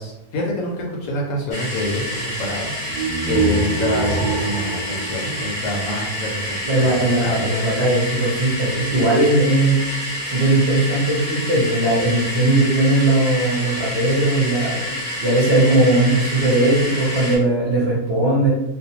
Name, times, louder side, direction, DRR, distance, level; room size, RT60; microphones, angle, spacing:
voice 1, 0.0-2.7 3.2-6.6 7.2-7.5, left 1 dB, 70° left, -1 dB, 0.9 m, -26 dB
sound 1, 1.5-17.4, equal, 40° left, 0.6 m, -28 dB
sound 2, 2.9-6.1, right 3 dB, 75° right, 1.0 m, -24 dB
voice 2, 6.6-9.8 10.2-14.8 15.2-18.5, right 2 dB, 50° right, -7 dB, 0.8 m, -18 dB
2.6 x 2.1 x 2.8 m, 0.96 s
omnidirectional pair, 1.7 m